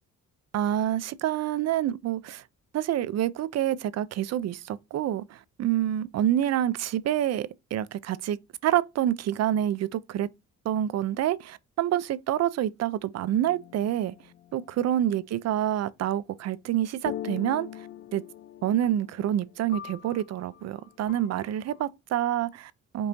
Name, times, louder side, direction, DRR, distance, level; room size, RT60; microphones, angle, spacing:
voice 1, 0.5-2.4 2.7-10.3 10.7-14.1 14.5-17.7 18.1-18.2 18.6-23.1, right 11 dB, 60° right, 0.5 m, -27 dB
sound 1, 13.4-15.2 17.0-21.8, left 10 dB, 40° left, 0.4 m, -43 dB
5.2 x 2.7 x 2.9 m
cardioid pair, 90°, 30 cm